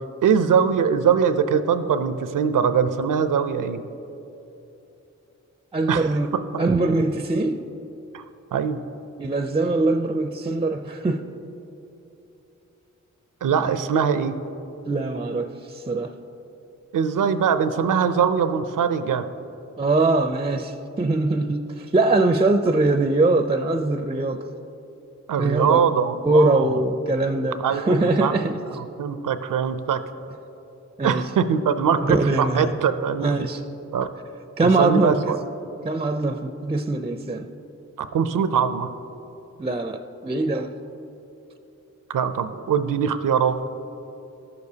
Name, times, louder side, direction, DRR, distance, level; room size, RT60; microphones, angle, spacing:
voice 1, 0.2-3.8 5.9-6.1 8.1-8.2 8.5-8.8 13.4-14.3 16.9-19.3 25.3-26.8 27.6-28.4 28.8-30.0 31.0-33.3 33.9-34.1 34.6-35.4 38.0-38.9 42.1-43.6, right 7 dB, 85° right, 11 dB, 0.5 m, -22 dB
voice 2, 5.7-6.3 6.6-7.6 9.2-11.2 14.9-16.1 19.8-24.4 25.4-25.8 26.2-28.6 31.0-31.2 32.0-32.8 33.2-33.6 34.6-35.2 35.8-37.5 39.6-40.7, right 2 dB, 20° right, 8 dB, 0.4 m, -22 dB
13.5 x 6.8 x 2.8 m, 2.9 s
cardioid pair, 50°, 31 cm